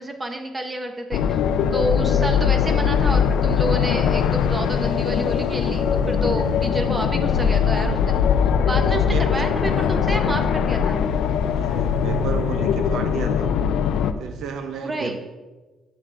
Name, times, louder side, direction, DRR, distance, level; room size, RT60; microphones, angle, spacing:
voice 1, 0.0-1.4 1.7-8.2 8.7-11.1 14.7-15.2, right 1 dB, 25° right, 5 dB, 1.0 m, -29 dB
sound 1, 1.1-14.1, left 7 dB, 85° left, 0.4 m, -21 dB
voice 2, 8.6-9.5 11.5-13.5 14.2-15.2, right 6 dB, 80° right, 8 dB, 0.7 m, -32 dB
7.4 x 6.2 x 3.4 m, 1.2 s
cardioid pair, 90°, 0 cm